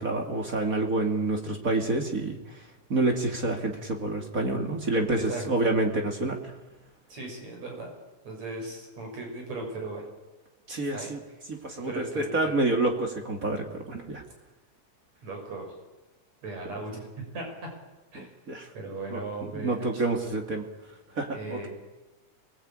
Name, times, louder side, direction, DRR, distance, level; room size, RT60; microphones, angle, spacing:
voice 1, 0.0-2.6 2.9-6.4 10.7-11.2 11.5-14.2 18.1-18.7 19.1-19.2 19.5-20.7 21.2-21.7, right 2 dB, 30° right, 3 dB, 2.2 m, -28 dB
voice 2, 7.1-7.9 8.2-10.0 10.9-11.3 11.8-12.6 15.2-15.7 16.4-17.0 17.3-17.7 18.1-18.3 18.7-20.0 21.3-21.7, right 2 dB, 60° right, 1 dB, 7.2 m, -37 dB
26.0 x 19.5 x 8.9 m, 1.1 s
omnidirectional pair, 3.6 m